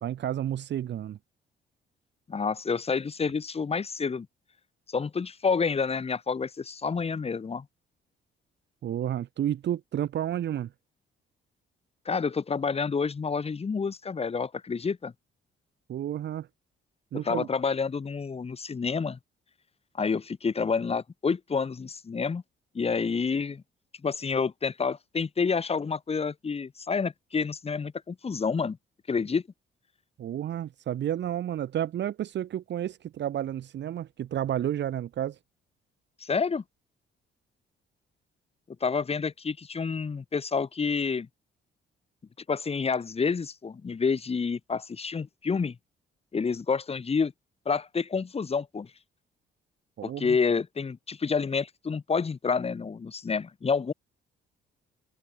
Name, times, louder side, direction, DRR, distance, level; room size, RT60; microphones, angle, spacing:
voice 1, 0.0-1.2 8.8-10.7 15.9-16.5 17.1-17.5 30.2-35.4 50.0-50.4, right 11 dB, 65° right, 1.2 m, -31 dB
voice 2, 2.3-4.3 4.9-7.6 12.0-15.1 17.1-19.2 20.0-22.4 22.7-23.6 24.0-28.8 29.1-29.4 36.2-36.6 38.8-41.3 42.5-45.7 46.3-47.3 47.6-48.9 50.0-53.9, left 5 dB, 30° left, 1.4 m, -28 dB
cardioid pair, 90°, 20 cm